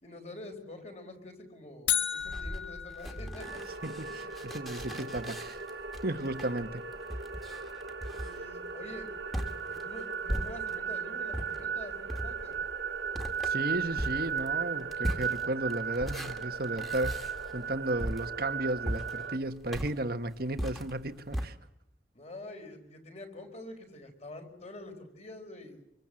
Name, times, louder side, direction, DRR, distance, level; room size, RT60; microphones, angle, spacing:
voice 1, 0.0-3.6 4.1-4.3 8.1-9.1 9.7-12.6 22.1-25.8, left 1 dB, 35° left, 4.7 m, -46 dB
sound 1, 1.9-4.0, left 10 dB, 75° left, 1.7 m, -34 dB
sound 2, 2.2-10.9 11.3-21.5, equal, ahead, 2.1 m, -39 dB
sound 3, 3.4-19.4, right 6 dB, 75° right, 2.2 m, -37 dB
voice 2, 3.8-5.6 6.0-6.8 13.4-21.6, right 1 dB, 55° right, 1.4 m, -34 dB
26.0 x 24.5 x 7.7 m
head